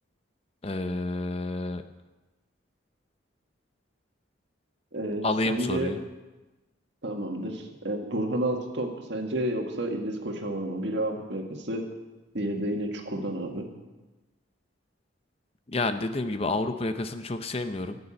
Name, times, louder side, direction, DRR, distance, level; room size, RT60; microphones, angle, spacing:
voice 1, 0.6-1.8 5.2-6.0 15.7-18.0, left 2 dB, 30° left, 9 dB, 0.6 m, -29 dB
voice 2, 4.9-5.9 7.0-11.8 12.3-13.7, right 1 dB, 60° right, 3 dB, 1.8 m, -30 dB
14.0 x 6.9 x 8.8 m, 1.1 s
head